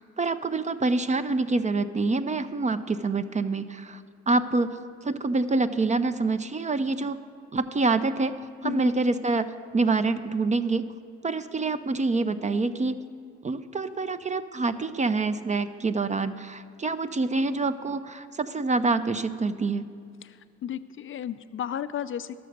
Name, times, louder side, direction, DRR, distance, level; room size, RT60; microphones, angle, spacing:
voice 1, 0.0-7.2 7.5-10.9 11.2-12.9 13.4-19.9, right 3 dB, 25° right, 13 dB, 0.4 m, -26 dB
voice 2, 20.6-22.4, left 9 dB, 45° left, 13 dB, 0.4 m, -33 dB
12.0 x 6.7 x 6.5 m, 2.3 s
cardioid pair, 90°, 30 cm